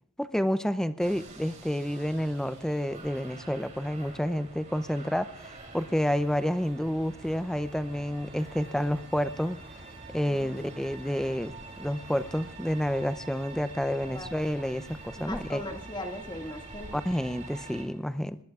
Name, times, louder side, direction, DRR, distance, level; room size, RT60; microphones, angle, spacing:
voice 1, 0.2-5.3 5.7-9.6 10.1-11.5 11.8-15.6 16.9-18.4, equal, 5° left, 12 dB, 0.5 m, -29 dB
sound 1, 1.0-17.8, right 2 dB, 40° right, 3.0 m, -46 dB
voice 2, 15.2-17.0, left 1 dB, 20° left, 2 dB, 1.9 m, -39 dB
24.5 x 20.0 x 2.4 m, 0.68 s
head